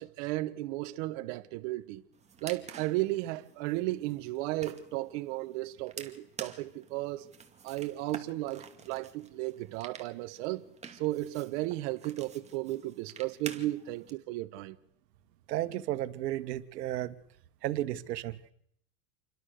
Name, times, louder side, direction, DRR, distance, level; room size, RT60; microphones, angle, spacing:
voice 1, 0.0-2.0 2.4-7.3 7.6-10.7 11.0-14.8, right 17 dB, 50° right, 1.4 m, -34 dB
sound 1, 2.1-14.1, right 6 dB, 15° right, 2.4 m, -49 dB
voice 2, 15.5-17.2 17.6-18.5, right 14 dB, 85° right, 1.8 m, -33 dB
28.5 x 23.5 x 6.7 m
supercardioid pair, 155°, 47 cm